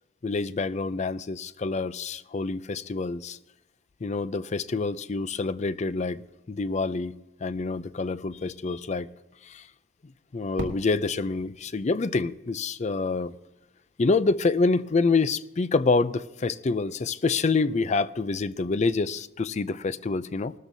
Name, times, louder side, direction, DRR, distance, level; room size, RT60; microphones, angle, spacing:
voice 1, 0.2-3.4 4.0-6.2 6.5-7.2 7.4-9.1 9.4-9.7 10.0-13.3 14.0-20.5, left 3 dB, 35° left, 0.4 m, -27 dB
Fireworks, 10.6-13.4, right 1 dB, 75° right, 2.0 m, -41 dB
19.5 x 13.0 x 2.7 m
head